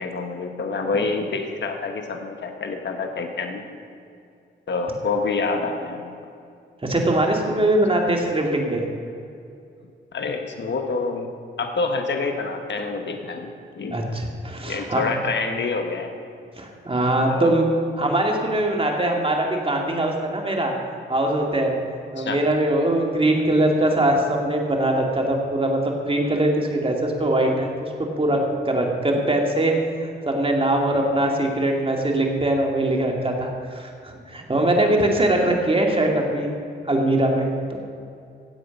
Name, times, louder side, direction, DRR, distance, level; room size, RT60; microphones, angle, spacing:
voice 1, 0.0-3.6 4.7-6.1 10.1-11.3 11.6-13.5 13.7-14.0 14.7-16.1 17.3-17.5 22.2-22.4, left 4 dB, 65° left, 4 dB, 1.4 m, -27 dB
voice 2, 6.8-8.8 13.9-15.1 16.6-17.6 18.0-20.7 21.1-21.7 22.1-27.7 28.2-28.4 28.6-29.7 30.3-36.5 36.9-37.8, right 1 dB, 25° right, 1 dB, 2.5 m, -22 dB
16.5 x 7.9 x 5.4 m, 2.5 s
cardioid pair, 65°, 20 cm